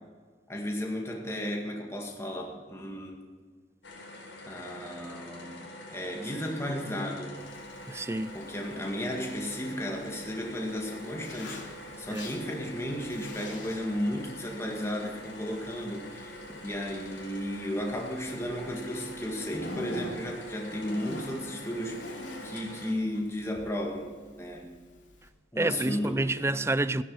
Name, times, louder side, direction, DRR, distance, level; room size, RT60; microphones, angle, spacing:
voice 1, 0.5-3.2 4.5-5.6 5.9-7.4 8.3-24.8 25.5-26.4, equal, 15° left, 1.9 m, -34 dB
sound 1, 3.8-22.9, left 1 dB, 90° left, 4.9 m, -45 dB
Zipper (clothing), 7.4-25.3, left 2 dB, 70° left, 3.0 m, -48 dB
voice 2, 7.9-8.3 12.1-12.3 25.6-27.0, right 2 dB, 15° right, 0.4 m, -28 dB
17.0 x 10.5 x 6.3 m
head